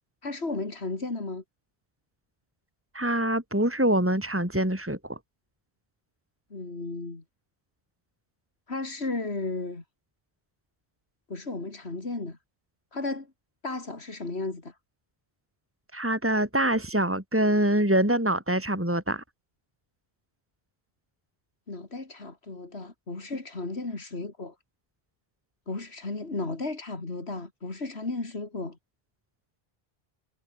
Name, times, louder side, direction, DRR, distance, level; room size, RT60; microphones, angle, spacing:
voice 1, 0.2-1.4 6.5-7.2 8.7-9.8 11.3-12.4 12.9-13.3 13.6-14.8 21.7-24.6 25.7-28.8, left 3 dB, 90° left, 3.5 m, -34 dB
voice 2, 2.9-5.2 15.9-19.2, right 1 dB, 10° right, 3.7 m, -25 dB
omnidirectional pair, 1.1 m